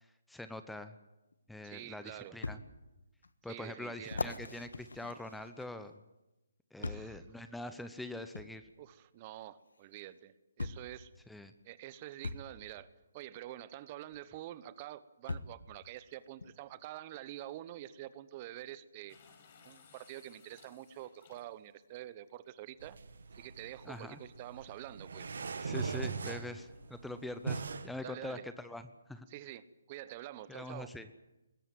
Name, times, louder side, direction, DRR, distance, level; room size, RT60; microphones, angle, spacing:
voice 1, 0.3-0.9 1.5-2.6 3.4-6.0 6.7-8.6 11.3-11.5 23.9-24.2 25.6-29.3 30.5-31.1, left 2 dB, 5° left, 10 dB, 0.9 m, -44 dB
sound 1, 1.3-1.4 2.4-2.6 3.2-3.3 4.0-5.9 6.8-7.2 8.3-8.5 9.8-9.9 10.6-10.9 12.2-12.5 14.1-14.2 15.3-15.6 16.4-16.5, left 3 dB, 75° left, 1.4 m, -40 dB
voice 2, 1.6-2.4 3.5-4.6 6.8-7.2 8.8-11.1 11.6-12.9 13.1-19.2 19.6-23.0 23.3-25.3 28.0-28.5 29.3-30.9, right 13 dB, 30° right, 16 dB, 1.0 m, -47 dB
sound 2, 19.1-21.8 22.7-22.8 25.6-27.2, left 4 dB, 40° left, 5.2 m, -61 dB
sound 3, 22.8-27.9, right 5 dB, 65° right, 1.9 m, -40 dB
21.0 x 17.0 x 9.4 m, 0.99 s
figure-of-eight pair, 145°, 0 cm